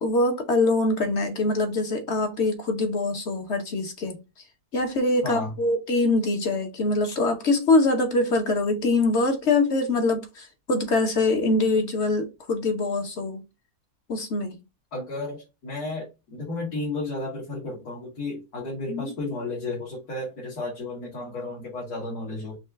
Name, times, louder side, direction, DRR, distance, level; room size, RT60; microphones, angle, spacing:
voice 1, 0.0-4.2 4.7-13.4 14.1-14.6 18.9-19.1, left 2 dB, 50° left, 1.1 m, -24 dB
voice 2, 14.9-22.6, left 2 dB, 75° left, 2.3 m, -33 dB
5.5 x 2.4 x 3.4 m
omnidirectional pair, 1.7 m